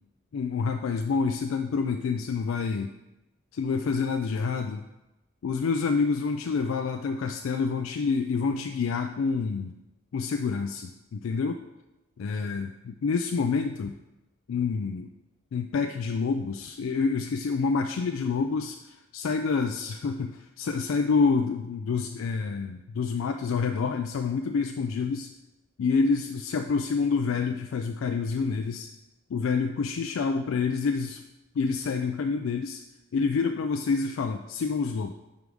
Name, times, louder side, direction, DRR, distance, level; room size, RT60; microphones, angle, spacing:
voice 1, 0.3-2.9 3.5-4.8 5.4-9.7 10.1-11.6 12.2-12.7 13.0-13.9 14.5-15.1 15.5-25.3 25.8-28.9 29.3-31.2 31.6-32.8 33.1-35.1, left 5 dB, 85° left, 5 dB, 0.4 m, -27 dB
5.3 x 4.7 x 4.8 m, 0.96 s
head